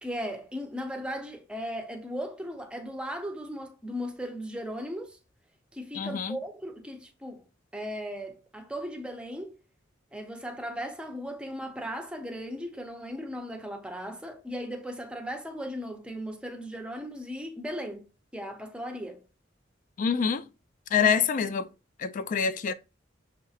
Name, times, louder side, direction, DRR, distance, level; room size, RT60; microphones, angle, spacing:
voice 1, 0.0-5.2 5.7-7.4 7.7-9.5 10.1-19.2 21.0-21.1, equal, 5° right, 0.6 m, -37 dB
voice 2, 5.9-6.4 20.0-20.5 20.9-21.7 22.0-22.7, left 6 dB, 45° left, 0.3 m, -26 dB
6.3 x 2.9 x 2.4 m
head